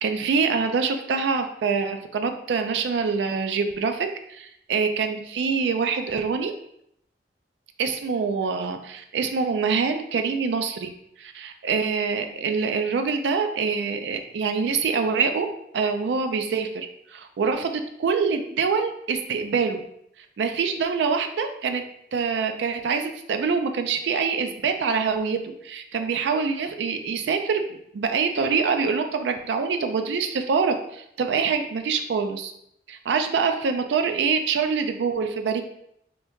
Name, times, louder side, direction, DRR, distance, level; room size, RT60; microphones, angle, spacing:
voice 1, 0.0-6.5 7.8-10.9 11.2-15.5 15.7-16.9 17.1-19.8 20.4-21.8 22.1-25.4 25.6-32.5 32.9-35.6, right 5 dB, 85° right, 6 dB, 0.3 m, -25 dB
2.8 x 2.7 x 3.4 m, 0.74 s
head